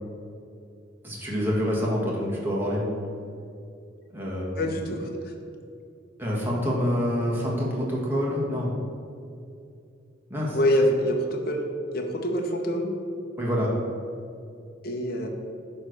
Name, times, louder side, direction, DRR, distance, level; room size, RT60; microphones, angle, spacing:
voice 1, 1.0-2.9 4.1-4.8 6.2-8.7 10.3-10.6 13.4-13.7, equal, 10° right, -5 dB, 1.5 m, -27 dB
voice 2, 4.6-5.1 10.5-11.6 11.9-12.9 14.8-15.3, equal, 50° left, 2 dB, 1.0 m, -25 dB
9.6 x 3.3 x 6.4 m, 2.4 s
head